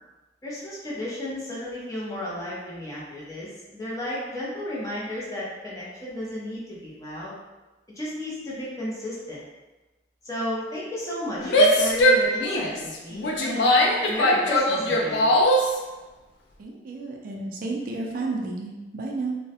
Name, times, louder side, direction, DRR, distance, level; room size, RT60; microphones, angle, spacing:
voice 1, 0.4-7.3 8.0-9.4 10.2-15.3, left 1 dB, 20° left, -7 dB, 0.6 m, -33 dB
Female speech woman speaking / Yell, 11.4-15.8, equal, 85° left, 0.4 m, -20 dB
voice 2, 16.6-19.4, right 3 dB, 50° right, 0 dB, 0.3 m, -31 dB
2.3 x 2.0 x 2.7 m, 1.1 s
head